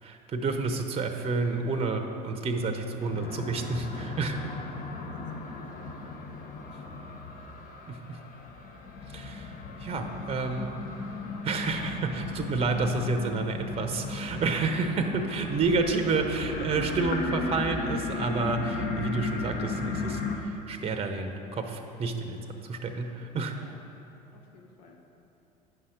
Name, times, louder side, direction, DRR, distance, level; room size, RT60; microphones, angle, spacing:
voice 1, 0.0-4.4 7.9-8.2 9.1-10.8 11.4-23.6, right 3 dB, 30° right, 6 dB, 0.8 m, -30 dB
sound 1, 3.0-20.4, left 3 dB, 45° left, 1.0 m, -35 dB
voice 2, 4.9-5.9 6.3-6.9 23.6-23.8 24.3-25.0, left 4 dB, 80° left, 2 dB, 0.9 m, -55 dB
9.4 x 5.6 x 5.0 m, 2.8 s
hypercardioid pair, 70°, 21 cm